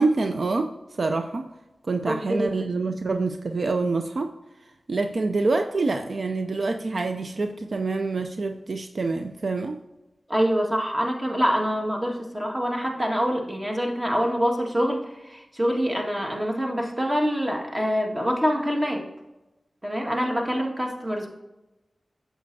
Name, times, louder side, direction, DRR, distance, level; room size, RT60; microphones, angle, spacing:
voice 1, 0.0-1.5 1.8-4.3 4.9-9.8, right 3 dB, 70° right, 6 dB, 0.5 m, -26 dB
voice 2, 2.1-2.5 10.3-19.0 19.8-21.3, equal, 20° right, 0 dB, 1.8 m, -25 dB
8.4 x 7.2 x 2.7 m, 1.0 s
cardioid pair, 50°, 0 cm